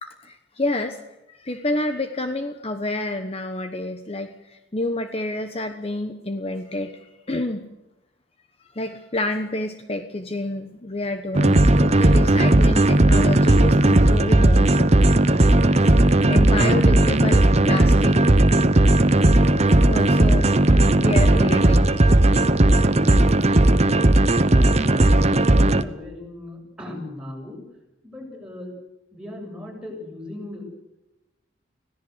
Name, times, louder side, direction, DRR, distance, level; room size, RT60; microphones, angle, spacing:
voice 1, 0.0-1.0 1.3-7.7 8.7-14.9 16.3-18.3 19.8-22.0, left 2 dB, 30° left, 7 dB, 1.2 m, -29 dB
sound 1, 11.3-25.8, right 1 dB, 35° right, 1.0 m, -16 dB
voice 2, 23.6-24.1 24.5-27.6 28.0-28.7 29.1-30.7, left 1 dB, 5° right, -1 dB, 7.4 m, -38 dB
25.5 x 17.0 x 8.1 m, 0.98 s
head